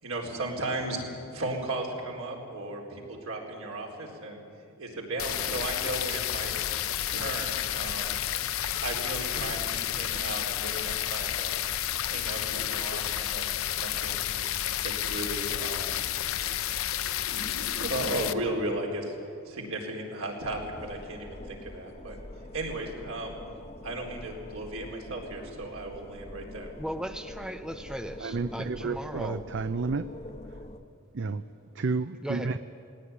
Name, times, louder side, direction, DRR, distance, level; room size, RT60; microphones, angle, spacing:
voice 1, 0.0-4.4 4.8-6.5 7.1-8.1 8.8-11.5 12.0-14.3 14.8-16.0 17.3-19.1 19.4-22.2 22.5-23.4 23.8-26.7, right 1 dB, 75° right, 0 dB, 4.2 m, -35 dB
sound 1, 5.2-18.3, left 11 dB, 75° left, 0.7 m, -31 dB
sound 2, 20.4-30.8, left 1 dB, 30° left, 1.0 m, -45 dB
voice 2, 26.8-29.5 32.2-32.6, equal, 5° right, 8 dB, 0.6 m, -37 dB
voice 3, 28.2-30.1 31.1-31.4 31.7-32.6, right 4 dB, 60° right, 12 dB, 0.5 m, -31 dB
18.5 x 18.0 x 9.8 m, 2.6 s
head